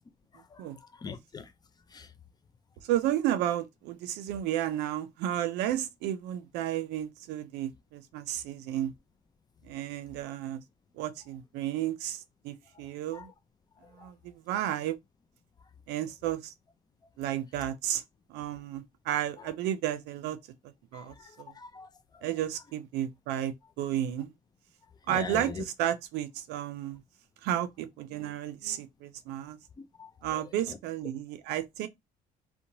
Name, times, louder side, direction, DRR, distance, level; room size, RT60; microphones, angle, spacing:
voice 1, 0.3-1.5 1.9-2.1 13.1-13.3 13.8-14.1 19.4-19.5 20.9-22.2 25.1-25.6 29.8-30.1 30.7-30.8, left 5 dB, 25° left, 0.4 m, -43 dB
voice 2, 2.8-8.9 9.6-10.6 10.9-13.3 13.9-15.0 15.9-16.5 17.2-18.0 18.3-20.4 20.9-21.5 22.2-24.3 25.1-27.0 27.4-29.6 30.2-31.9, right 12 dB, 90° right, 0.5 m, -32 dB
2.9 x 2.1 x 2.6 m
cardioid pair, 110°, 17 cm